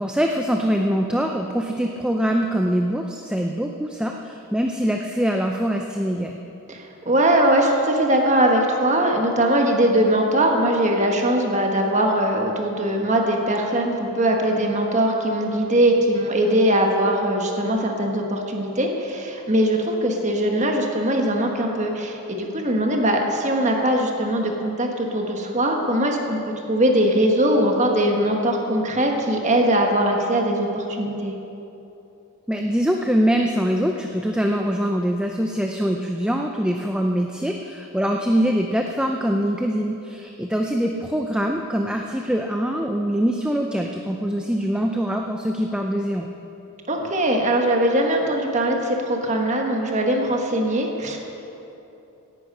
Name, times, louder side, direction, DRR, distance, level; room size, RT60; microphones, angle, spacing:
voice 1, 0.0-6.4 32.5-46.3, equal, 5° right, 2 dB, 0.5 m, -23 dB
voice 2, 6.7-26.4 26.7-31.3 46.9-51.2, right 1 dB, 30° right, 2 dB, 1.5 m, -21 dB
17.5 x 11.0 x 5.5 m, 3.0 s
head